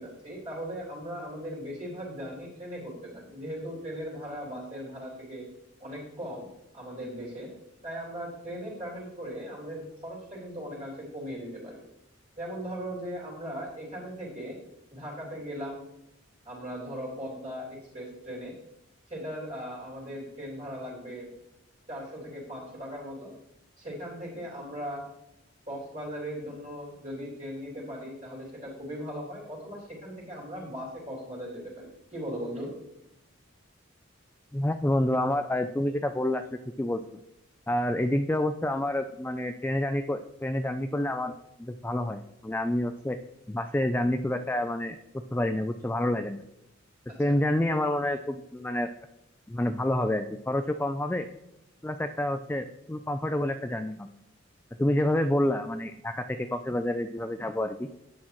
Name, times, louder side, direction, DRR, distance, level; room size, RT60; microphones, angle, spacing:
voice 1, 0.0-5.5 5.8-6.5 6.7-7.5 7.8-11.8 12.4-14.6 14.9-15.9 16.4-18.5 19.1-21.3 21.9-23.3 23.8-25.1 25.7-32.7 47.3-47.4, equal, 35° right, -5 dB, 3.8 m, -38 dB
voice 2, 34.5-36.4 36.8-37.0 37.7-41.3 41.6-43.2 43.5-45.0 45.3-46.4 47.2-48.9 49.5-51.3 51.8-54.1 54.8-57.9, left 1 dB, 10° left, 7 dB, 0.3 m, -28 dB
11.0 x 8.4 x 3.1 m, 0.85 s
head